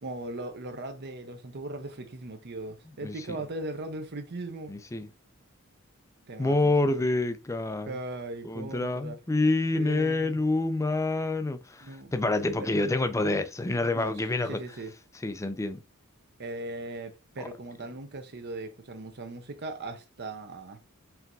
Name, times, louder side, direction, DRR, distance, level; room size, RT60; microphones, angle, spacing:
voice 1, 0.0-4.7 6.3-6.9 7.9-9.2 9.7-10.4 11.8-12.1 12.6-12.7 13.9-14.9 16.4-20.8, right 2 dB, 50° right, 0.8 m, -38 dB
voice 2, 4.7-5.1 6.4-8.0 8.4-14.6 15.2-15.8, left 2 dB, 15° left, 0.4 m, -27 dB
4.5 x 3.5 x 2.6 m
head